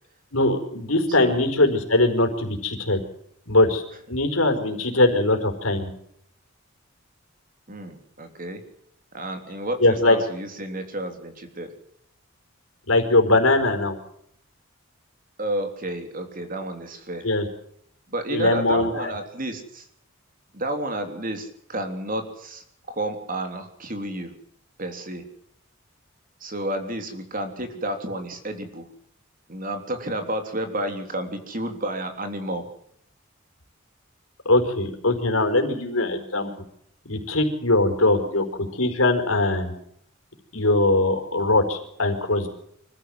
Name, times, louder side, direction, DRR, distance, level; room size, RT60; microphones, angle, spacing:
voice 1, 0.3-3.0 3.5-3.8 4.1-5.9 9.8-10.2 12.9-14.0 17.2-17.5 18.3-19.1 34.4-36.5 37.0-38.4 38.8-39.7 40.5-42.5, left 2 dB, 85° left, 5 dB, 4.6 m, -21 dB
voice 2, 7.7-8.6 9.1-11.7 15.4-17.3 18.1-19.8 20.5-24.3 24.8-25.2 26.4-28.8 29.5-32.6, right 1 dB, 40° right, 6 dB, 3.4 m, -31 dB
25.0 x 14.5 x 7.9 m, 0.69 s
head